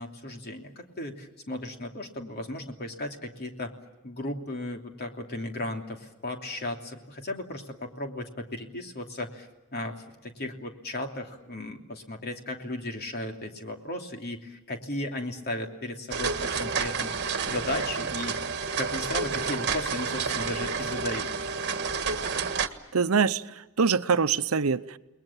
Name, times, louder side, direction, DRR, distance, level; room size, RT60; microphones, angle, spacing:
voice 1, 0.0-3.7 4.0-17.1 17.4-18.4 18.8-21.3, left 1 dB, 50° left, 3 dB, 3.0 m, -35 dB
sound 1, 16.1-22.7, right 5 dB, 55° right, 1.5 m, -30 dB
voice 2, 22.9-25.0, right 5 dB, 80° right, 13 dB, 0.8 m, -24 dB
29.5 x 21.0 x 7.4 m, 1.1 s
head